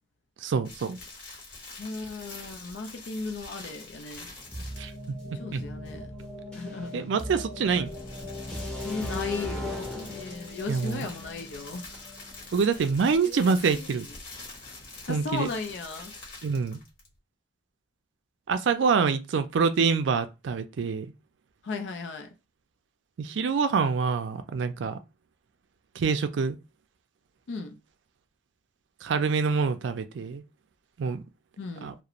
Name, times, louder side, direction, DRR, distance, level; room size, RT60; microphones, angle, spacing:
voice 1, 0.4-1.0 4.8-4.9 5.5-5.6 6.9-7.9 10.7-11.1 12.5-14.1 15.1-15.5 16.4-16.8 18.5-21.1 23.2-25.0 26.0-26.6 29.0-30.4 31.0-31.2 31.8-31.9, right 5 dB, 85° right, 0.4 m, -26 dB
sound 1, 0.6-5.1 7.6-17.2, left 3 dB, 50° left, 1.0 m, -46 dB
voice 2, 1.8-4.3 5.3-6.1 6.5-7.1 8.8-12.1 13.2-13.9 15.1-16.1 21.6-22.3 27.5-27.8 31.6-32.0, left 3 dB, 75° left, 0.4 m, -36 dB
sound 2, 4.5-12.4, left 1 dB, 5° left, 0.6 m, -38 dB
2.4 x 2.0 x 2.9 m
head